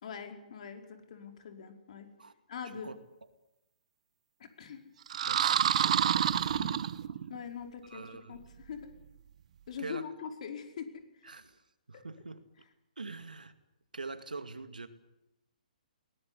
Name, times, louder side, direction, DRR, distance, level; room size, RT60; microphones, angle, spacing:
voice 1, 0.0-2.1 2.5-2.9 4.6-4.8 6.5-6.8 7.3-8.9 9.7-11.3, left 7 dB, 55° left, 5 dB, 5.1 m, -43 dB
sound 1, 5.1-7.4, right 9 dB, 55° right, 1.2 m, -28 dB
voice 2, 5.3-6.8 7.9-8.4 9.8-10.1 11.2-11.6 11.9-12.4 13.0-13.5 13.9-14.9, right 3 dB, 90° right, 10 dB, 2.4 m, -44 dB
21.5 x 19.0 x 9.8 m, 0.90 s
hypercardioid pair, 135°, 4 cm